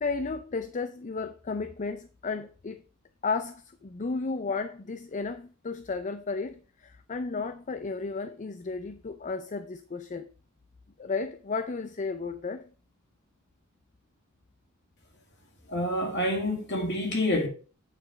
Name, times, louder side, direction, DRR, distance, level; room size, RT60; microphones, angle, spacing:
voice 1, 0.0-2.8 3.2-10.3 11.0-12.7, left 4 dB, 35° left, 0.5 m, -33 dB
voice 2, 15.7-17.5, left 1 dB, 55° left, 2.4 m, -27 dB
8.9 x 4.3 x 5.7 m
head